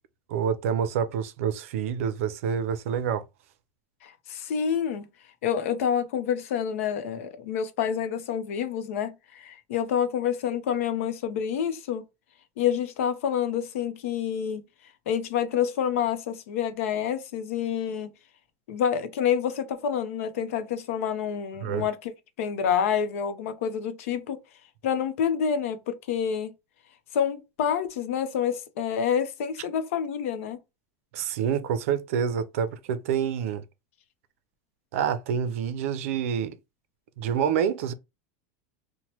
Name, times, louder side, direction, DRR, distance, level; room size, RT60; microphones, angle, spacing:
voice 1, 0.3-3.2 21.6-21.9 31.1-33.6 34.9-36.6 37.2-37.9, right 8 dB, 85° right, 0.4 m, -27 dB
voice 2, 4.0-5.1 5.4-12.0 12.6-14.6 15.1-18.1 18.7-22.1 22.4-24.4 24.8-26.5 27.1-30.6, left 8 dB, 85° left, 0.6 m, -28 dB
3.0 x 2.1 x 2.8 m
supercardioid pair, 165°, 7 cm